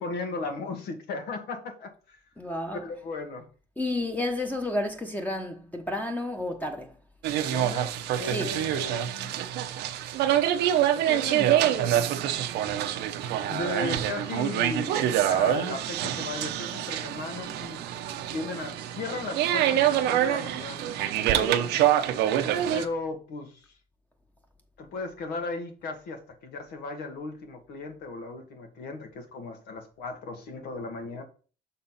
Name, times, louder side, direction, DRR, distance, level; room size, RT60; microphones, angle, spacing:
voice 1, 0.0-2.2 2.8-3.5 7.4-9.6 10.3-10.6 10.9-12.2 13.5-17.8 18.3-21.0 22.4-23.7 24.8-31.2, left 3 dB, 75° left, 1.7 m, -36 dB
voice 2, 2.4-2.8 3.8-7.0 8.2-8.6 21.2-21.8, left 1 dB, 10° left, 1.1 m, -31 dB
sound 1, 7.2-22.8, right 11 dB, 85° right, 0.8 m, -26 dB
6.2 x 4.2 x 5.6 m
cardioid pair, 110°, 17 cm